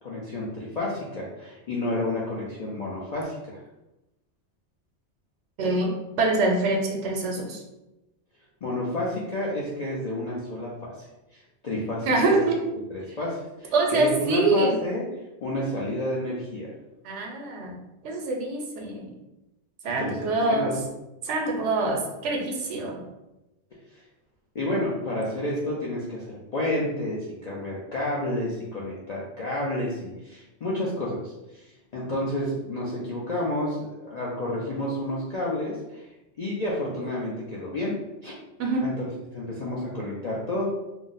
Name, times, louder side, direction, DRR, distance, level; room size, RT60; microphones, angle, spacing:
voice 1, 0.0-3.6 8.6-11.1 11.3-12.4 12.9-15.1 15.4-16.7 20.0-20.8 23.9-24.0 24.5-31.6 31.9-36.1 36.4-37.9 38.2-38.3 38.8-40.7, left 1 dB, 55° left, -5 dB, 0.4 m, -30 dB
voice 2, 5.6-5.9 6.2-7.6 12.0-12.6 13.7-14.7 17.0-19.1 19.8-20.7 21.2-23.0 38.6-38.8, right 2 dB, 75° right, 1 dB, 0.9 m, -25 dB
2.5 x 2.1 x 3.8 m, 0.98 s
omnidirectional pair, 1.3 m